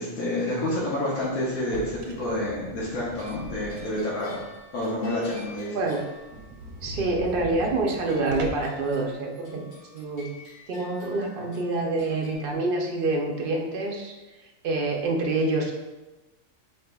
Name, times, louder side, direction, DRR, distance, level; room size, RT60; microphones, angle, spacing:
voice 1, 0.0-4.4 4.7-5.8, left 1 dB, 90° left, -6 dB, 1.4 m, -28 dB
sound 1, 1.6-4.1 4.6-4.7 5.1-5.2 5.4-5.5 5.8-5.9 6.2-8.8, right 2 dB, 80° right, 1.0 m, -40 dB
sound 2, 3.0-7.3 7.9-12.3, left 2 dB, 50° left, 1.7 m, -50 dB
voice 2, 6.8-9.6 9.9-10.3 10.7-14.1 14.6-15.8, right 2 dB, 55° right, 0 dB, 0.6 m, -26 dB
5.6 x 3.3 x 2.3 m, 1.1 s
omnidirectional pair, 1.4 m